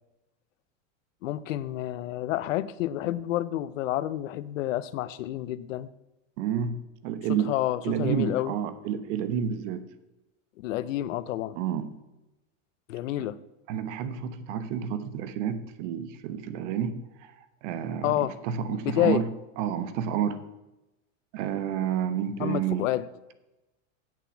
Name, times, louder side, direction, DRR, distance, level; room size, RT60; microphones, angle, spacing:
voice 1, 1.2-5.9 7.4-8.5 10.6-11.6 12.9-13.4 18.0-18.4 18.7-19.2 22.4-23.1, left 14 dB, 80° left, 17 dB, 0.7 m, -29 dB
voice 2, 6.4-7.5 7.8-9.8 11.5-11.9 13.7-17.3 17.6-19.3 19.6-20.4 21.3-22.9, right 8 dB, 65° right, 12 dB, 1.1 m, -30 dB
8.2 x 7.0 x 7.2 m, 0.98 s
supercardioid pair, 110°, 38 cm